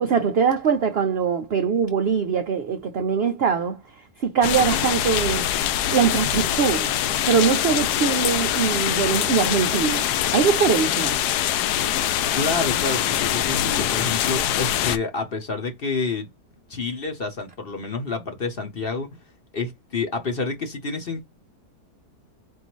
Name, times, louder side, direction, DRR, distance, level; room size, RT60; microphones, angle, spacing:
voice 1, 0.0-5.6 5.9-7.0 7.2-11.2, right 6 dB, 65° right, 0.6 m, -22 dB
sound 1, 4.4-15.0, left 11 dB, 85° left, 1.2 m, -23 dB
voice 2, 12.3-16.3 16.7-19.2 19.5-21.2, left 4 dB, 45° left, 0.9 m, -28 dB
4.7 x 2.6 x 3.0 m
omnidirectional pair, 1.7 m